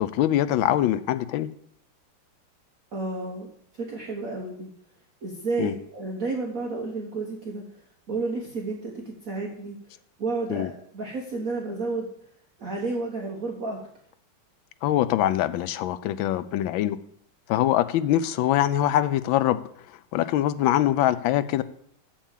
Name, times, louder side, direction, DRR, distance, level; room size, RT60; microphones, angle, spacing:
voice 1, 0.0-1.5 5.6-5.7 10.5-10.7 14.8-17.0 17.5-19.6 20.1-21.6, left 12 dB, 75° left, 13 dB, 1.3 m, -23 dB
voice 2, 2.9-4.7 5.2-7.8 8.1-9.8 10.2-12.1 12.6-13.8, right 3 dB, 45° right, 0 dB, 1.3 m, -31 dB
7.2 x 7.1 x 7.2 m, 0.67 s
omnidirectional pair, 2.3 m